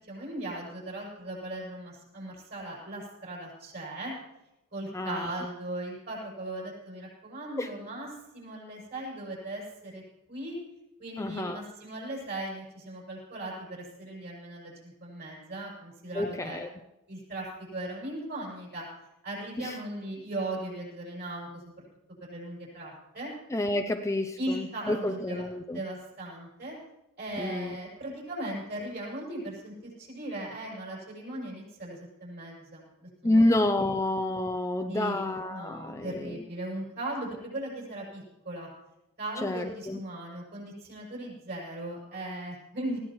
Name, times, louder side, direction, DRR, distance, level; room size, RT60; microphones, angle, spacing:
voice 1, 0.0-4.1 4.7-8.1 8.3-10.0 10.3-10.6 11.0-16.6 17.1-17.5 17.7-18.9 19.2-21.7 22.2-23.3 24.4-25.4 25.7-26.8 27.2-33.4 33.8-33.9 34.9-38.7 39.2-43.0, right 1 dB, 45° right, -3 dB, 6.6 m, -38 dB
voice 2, 4.9-5.3 7.6-7.7 11.2-11.6 16.1-16.7 19.6-19.8 23.5-25.8 27.4-27.8 33.2-36.4 39.4-40.0, left 1 dB, 15° left, 6 dB, 0.5 m, -29 dB
19.5 x 16.5 x 3.1 m, 0.92 s
head